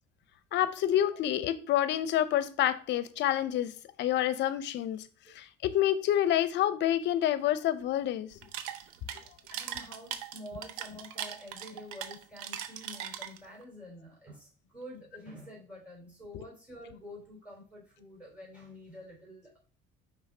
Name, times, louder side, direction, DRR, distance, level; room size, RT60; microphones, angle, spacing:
voice 1, 0.5-3.7 4.0-5.1 5.3-8.3, left 12 dB, 60° left, 15 dB, 0.6 m, -28 dB
sound 1, 8.3-13.6, right 10 dB, 90° right, 0.6 m, -40 dB
voice 2, 9.5-19.6, left 1 dB, 5° right, -4 dB, 3.3 m, -48 dB
5.7 x 3.5 x 4.8 m, 0.40 s
cardioid pair, 115°, 21 cm